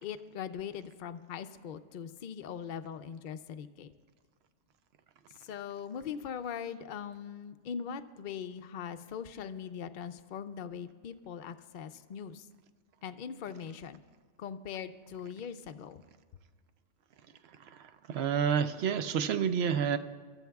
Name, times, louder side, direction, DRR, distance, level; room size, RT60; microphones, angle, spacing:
voice 1, 0.0-3.9 5.4-12.5 13.0-14.0 14.4-16.0, left 7 dB, 60° left, 9 dB, 0.5 m, -41 dB
voice 2, 18.1-20.0, right 7 dB, 65° right, 10 dB, 0.8 m, -28 dB
25.0 x 13.0 x 2.3 m, 1.5 s
omnidirectional pair, 1.2 m